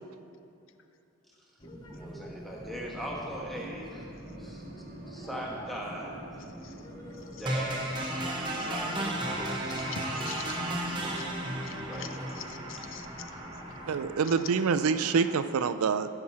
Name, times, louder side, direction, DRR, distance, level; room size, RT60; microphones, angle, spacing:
sound 1, 1.6-14.2, equal, 20° left, 0.9 m, -46 dB
voice 1, 1.9-4.1 4.4-4.6 5.1-6.1 7.4-10.0 11.9-12.4, equal, ahead, -3 dB, 1.2 m, -40 dB
sound 2, 2.6-8.5, right 1 dB, 45° right, 0.9 m, -49 dB
sound 3, 7.5-15.5, right 1 dB, 20° right, 0.9 m, -35 dB
voice 2, 9.8-10.6 11.1-13.3, left 7 dB, 60° left, 9 dB, 0.6 m, -45 dB
voice 3, 13.9-16.1, right 5 dB, 85° right, 12 dB, 0.4 m, -26 dB
15.0 x 6.0 x 4.2 m, 2.7 s
head